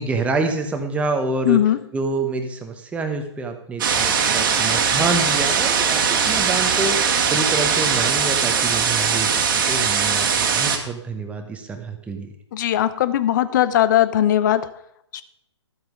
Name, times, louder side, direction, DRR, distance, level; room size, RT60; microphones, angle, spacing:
voice 1, 0.0-1.6 1.9-9.3 9.7-12.3, right 3 dB, 10° right, 5 dB, 1.1 m, -27 dB
voice 2, 1.5-1.8 12.5-14.6 15.1-15.2, left 12 dB, 40° left, 14 dB, 0.8 m, -19 dB
sound 1, 3.8-10.8, right 6 dB, 45° right, 1.7 m, -20 dB
12.5 x 7.9 x 5.2 m, 0.77 s
hypercardioid pair, 135°, 15 cm